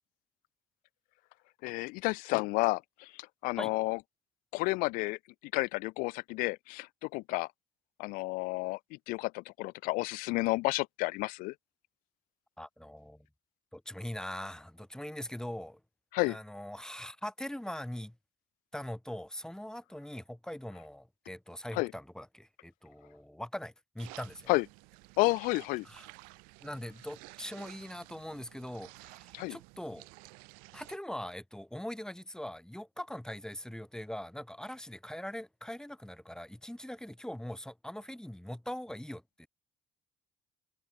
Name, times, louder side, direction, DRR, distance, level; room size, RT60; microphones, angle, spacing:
voice 1, 1.6-4.0 4.5-7.5 8.0-11.5 16.1-16.4 21.7-21.9 24.5-24.7 25.2-25.9 29.3-29.6, left 24 dB, 70° left, 0.4 m, -31 dB
voice 2, 12.6-13.3 13.7-15.8 16.2-18.1 18.7-24.5 25.8-26.1 26.6-30.1 30.7-39.5, left 1 dB, 5° left, 1.4 m, -42 dB
sound 1, 24.0-31.0, right 31 dB, 75° right, 2.0 m, -53 dB
hypercardioid pair, 50°, 15 cm